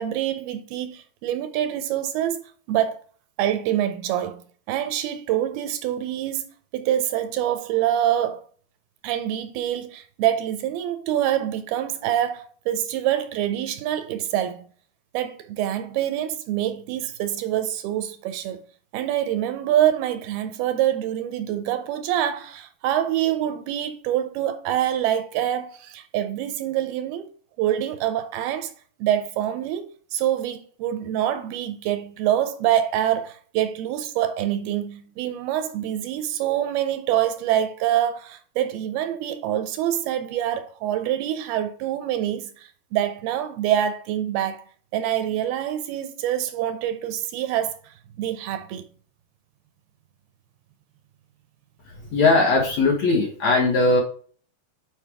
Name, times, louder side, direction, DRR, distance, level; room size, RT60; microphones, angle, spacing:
voice 1, 0.0-3.0 3.4-4.4 4.7-6.4 6.7-8.4 9.0-14.7 15.1-18.6 18.9-27.3 27.6-28.7 29.0-44.6 44.9-48.9, right 11 dB, 80° right, 2.4 m, -25 dB
voice 2, 52.1-54.0, left 3 dB, 60° left, 1.9 m, -19 dB
9.1 x 4.9 x 3.5 m
omnidirectional pair, 4.7 m